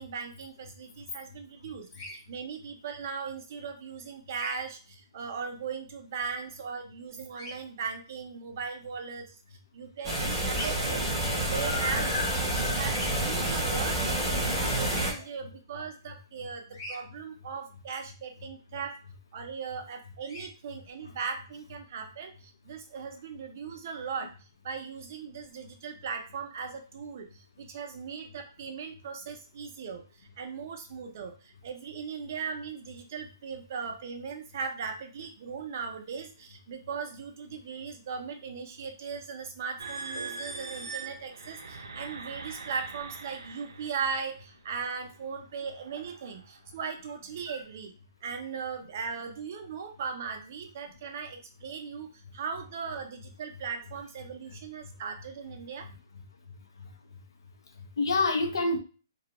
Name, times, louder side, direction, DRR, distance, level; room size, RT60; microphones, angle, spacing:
voice 1, 0.0-9.4 9.7-11.1 11.5-12.1 12.3-14.4 14.8-19.0 19.3-47.9 48.2-55.9, right 6 dB, 40° right, 4 dB, 0.5 m, -38 dB
Bird vocalization bird call bird song, 1.9-2.2 4.3-4.6 7.3-7.5 10.5-10.8 12.9-13.1 14.9-15.1 16.7-17.0 20.2-20.5, left 1 dB, 35° left, 0.7 m, -41 dB
sound 1, 10.0-15.1, right 1 dB, ahead, 0.8 m, -29 dB
voice 2, 11.4-12.8 14.3-15.2 21.0-21.1 54.5-54.9 55.8-55.9 56.8-56.9 57.8-58.8, left 3 dB, 90° left, 5 dB, 0.6 m, -31 dB
sound 2, 39.8-44.3 44.9-45.2 45.8-46.1, right 4 dB, 85° right, 0.5 m, -41 dB
2.3 x 2.2 x 2.9 m, 0.36 s
hypercardioid pair, 170°, 2 cm